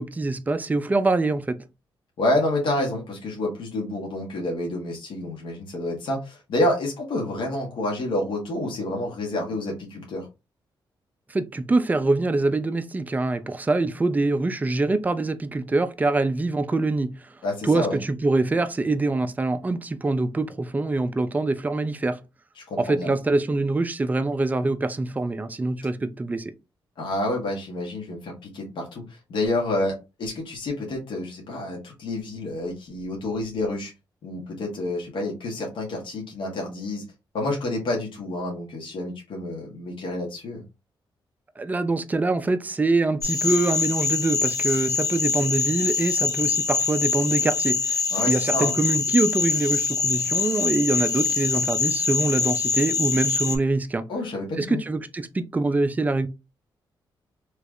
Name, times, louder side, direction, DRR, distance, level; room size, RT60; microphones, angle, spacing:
voice 1, 0.0-1.6 11.3-17.4 17.6-22.2 22.8-26.5 41.6-48.0 48.3-54.1 54.6-56.3, right 2 dB, 20° right, 0.4 m, -24 dB
voice 2, 2.2-10.3 17.4-18.0 22.6-23.2 27.0-33.9 34.2-37.0 37.3-40.6 48.1-48.7 54.1-54.8, left 1 dB, 75° left, 1.4 m, -28 dB
sound 1, 43.2-53.6, left 4 dB, 45° left, 0.9 m, -24 dB
3.2 x 3.1 x 2.4 m
cardioid pair, 90°, 9 cm